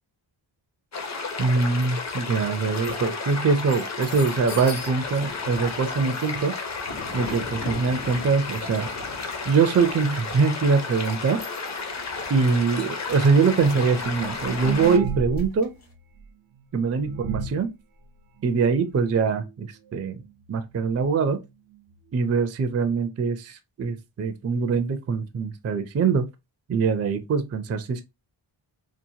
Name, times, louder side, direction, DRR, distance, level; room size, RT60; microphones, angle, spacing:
sound 1, 0.9-15.0, left 4 dB, 35° left, 0.6 m, -33 dB
voice 1, 1.4-6.5 7.1-8.9 9.5-11.4 12.3-15.7 16.7-17.7 18.4-20.2 20.5-21.4 22.1-26.3 26.7-28.0, right 5 dB, 35° right, 0.4 m, -23 dB
sound 2, 1.8-2.2 2.6-15.9, left 3 dB, 75° left, 1.1 m, -42 dB
sound 3, 14.0-15.6 15.9-16.0 16.6-16.7 17.0-17.7 18.4-18.5 18.8-18.9 19.2-19.5 20.3-20.4 20.7-20.8 21.4-21.5 21.8-21.9, right 6 dB, 85° right, 0.6 m, -31 dB
2.8 x 2.2 x 2.7 m
cardioid pair, 70°, 48 cm